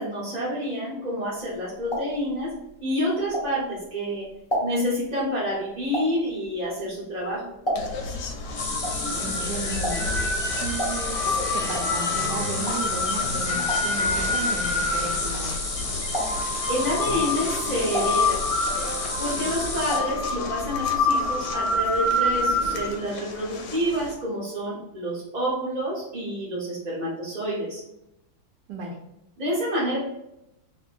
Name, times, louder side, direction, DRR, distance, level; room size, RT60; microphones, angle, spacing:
voice 1, 0.0-2.5 2.8-4.3 4.6-7.5 16.7-18.4 19.2-27.8 29.4-30.0, equal, 35° right, -7 dB, 0.6 m, -28 dB
sound 1, 1.4-3.9 4.2-8.2 8.5-15.8 16.1-16.6 17.1-18.8 19.1-20.2 20.5-20.6 20.8-20.9, equal, 25° left, 0.5 m, -33 dB
sound 2, 7.8-24.1, left 3 dB, 75° left, 1.2 m, -28 dB
sound 3, 8.6-20.0, left 2 dB, 45° left, 0.9 m, -31 dB
voice 2, 9.2-15.6 28.7-29.0, right 3 dB, 75° right, 0 dB, 1.2 m, -34 dB
2.9 x 2.9 x 4.2 m, 0.87 s
omnidirectional pair, 2.1 m